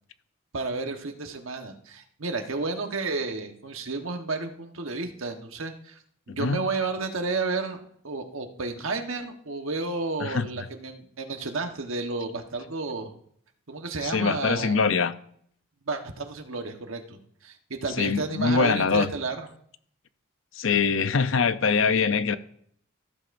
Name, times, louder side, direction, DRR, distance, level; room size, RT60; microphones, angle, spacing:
voice 1, 0.5-6.0 6.3-13.1 13.7-14.8 15.8-19.5, right 3 dB, 80° right, 1.3 m, -32 dB
voice 2, 6.3-6.6 10.2-10.5 14.0-15.1 18.0-19.1 20.5-22.4, left 5 dB, 70° left, 0.6 m, -23 dB
14.5 x 13.0 x 2.6 m
head